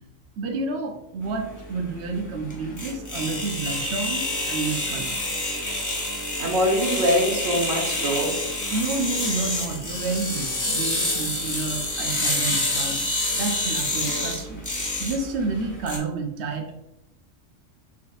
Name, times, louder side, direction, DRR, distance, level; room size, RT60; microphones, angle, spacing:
voice 1, 0.4-5.2 8.7-13.0 13.3-14.6 15.0-16.8, right 3 dB, 65° right, 4 dB, 0.9 m, -30 dB
sound 1, 1.3-16.0, left 1 dB, 20° left, 0.7 m, -28 dB
voice 2, 6.4-8.4, equal, 85° right, 0 dB, 1.5 m, -23 dB
4.5 x 4.2 x 2.4 m, 0.90 s
omnidirectional pair, 1.3 m